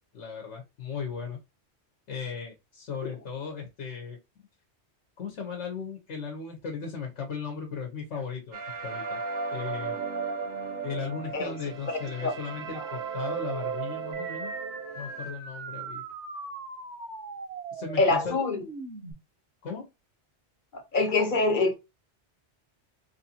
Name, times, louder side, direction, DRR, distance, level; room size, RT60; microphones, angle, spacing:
voice 1, 0.1-1.4 2.1-4.2 5.2-9.2 9.5-10.0 10.8-14.5 15.0-16.0 17.7-18.4 19.6-19.8, left 5 dB, 85° left, 1.1 m, -36 dB
sound 1, 8.5-15.3, right 5 dB, 50° right, 0.6 m, -35 dB
sound 2, 14.1-19.1, right 3 dB, 85° right, 1.2 m, -40 dB
voice 2, 18.0-18.6 20.7-21.7, left 3 dB, 50° left, 0.8 m, -24 dB
3.1 x 2.6 x 2.7 m
omnidirectional pair, 1.2 m